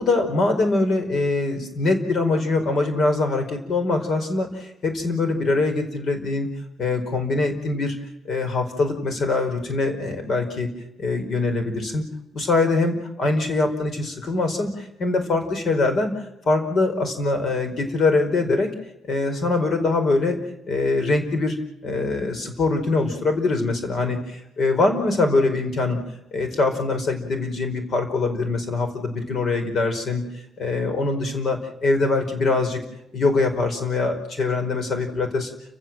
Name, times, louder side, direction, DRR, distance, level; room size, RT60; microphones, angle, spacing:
voice 1, 0.0-6.5 6.8-8.0 8.2-10.7 11.0-12.0 12.3-18.7 19.0-20.4 20.7-21.6 21.8-26.0 26.3-32.8 33.1-35.5, left 3 dB, 60° left, 6 dB, 4.8 m, -23 dB
30.0 x 15.5 x 7.5 m, 0.91 s
cardioid pair, 90°, 0 cm